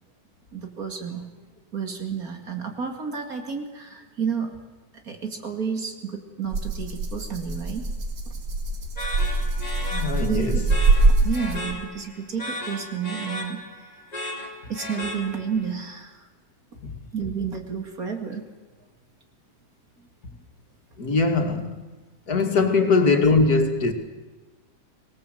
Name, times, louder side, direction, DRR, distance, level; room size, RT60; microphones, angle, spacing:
voice 1, 0.5-1.2 1.7-4.5 5.0-7.8 10.2-10.5 11.2-13.6 14.7-16.2 17.1-18.4 22.8-22.9 23.1-23.2, right 6 dB, 55° right, 3.0 m, -31 dB
Rattle (instrument), 6.5-11.9, right 2 dB, 75° right, 2.8 m, -23 dB
sound 1, 9.0-15.7, left 1 dB, 20° left, 3.2 m, -35 dB
voice 2, 9.9-10.6 16.8-17.0 21.0-21.8 22.3-23.9, left 3 dB, 60° left, 2.8 m, -21 dB
25.0 x 19.0 x 7.8 m
omnidirectional pair, 1.8 m